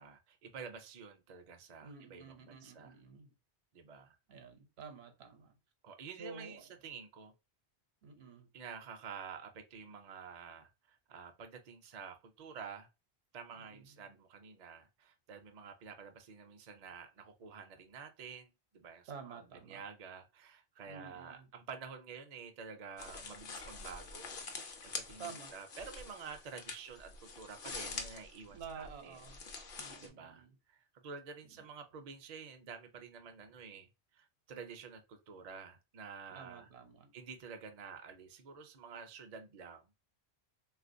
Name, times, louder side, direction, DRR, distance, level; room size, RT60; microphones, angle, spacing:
voice 1, 0.0-2.9 3.7-4.2 5.8-7.3 8.5-12.9 13.3-29.2 30.0-36.7 37.1-40.1, right 6 dB, 55° right, 0.5 m, -50 dB
voice 2, 1.8-3.3 4.3-5.5 6.1-6.7 8.0-8.5 13.5-13.9 19.1-19.8 20.9-21.5 25.2-25.5 28.5-29.4 29.8-30.6 31.4-31.7 36.3-37.1, right 5 dB, 70° right, 0.9 m, -51 dB
sound 1, 23.0-30.1, left 4 dB, 55° left, 0.7 m, -46 dB
3.5 x 2.4 x 2.5 m
omnidirectional pair, 1.1 m